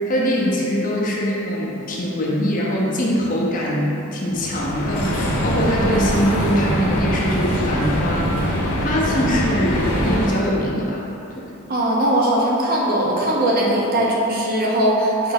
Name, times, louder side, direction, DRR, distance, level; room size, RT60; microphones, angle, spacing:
voice 1, 0.1-8.3 8.8-11.0 11.4-11.5, equal, 35° left, -4 dB, 0.5 m, -22 dB
sound 1, 4.3-10.3, equal, 85° left, 0.7 m, -23 dB
voice 2, 11.7-15.3, right 1 dB, 40° right, -4 dB, 0.6 m, -19 dB
4.6 x 2.6 x 3.9 m, 2.9 s
head